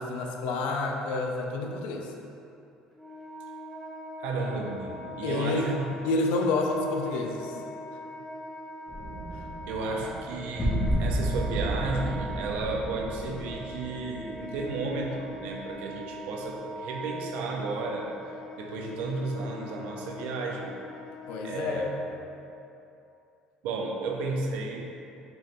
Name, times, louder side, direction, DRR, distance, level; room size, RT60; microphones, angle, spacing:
voice 1, 0.0-2.1 5.2-5.7 6.0-7.6 9.3-9.5 21.3-22.0, left 3 dB, 80° left, 1 dB, 0.5 m, -29 dB
Wind instrument woodwind instrument, 2.9-22.4, equal, ahead, 0.6 m, -42 dB
voice 2, 4.2-5.8 9.7-18.1 18.6-20.8 21.4-21.9 23.6-24.9, right 3 dB, 75° right, 0 dB, 0.5 m, -33 dB
sound 1, 8.9-15.7, right 1 dB, 25° left, 0.8 m, -32 dB
4.5 x 3.0 x 3.0 m, 2.8 s
cardioid pair, 145°, 2 cm